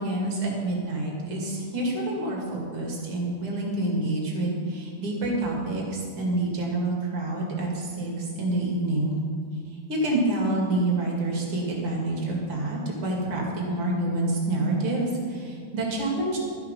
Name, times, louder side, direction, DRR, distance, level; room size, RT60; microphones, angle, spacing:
voice 1, 0.0-9.2 9.9-16.4, right 2 dB, 40° right, -2 dB, 2.1 m, -27 dB
13.0 x 10.5 x 5.3 m, 2.2 s
omnidirectional pair, 5.4 m